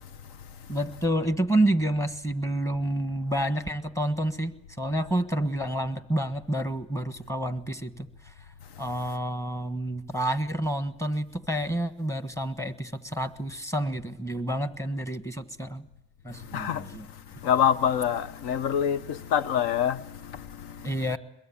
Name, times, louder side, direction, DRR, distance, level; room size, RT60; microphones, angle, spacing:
voice 1, 0.7-8.1 8.8-15.9 16.2-17.0 20.8-21.2, right 1 dB, 5° left, 1.4 m, -29 dB
voice 2, 16.5-17.0 17.4-21.2, left 9 dB, 75° left, 1.1 m, -26 dB
22.5 x 22.0 x 8.6 m
cardioid pair, 105°, 40 cm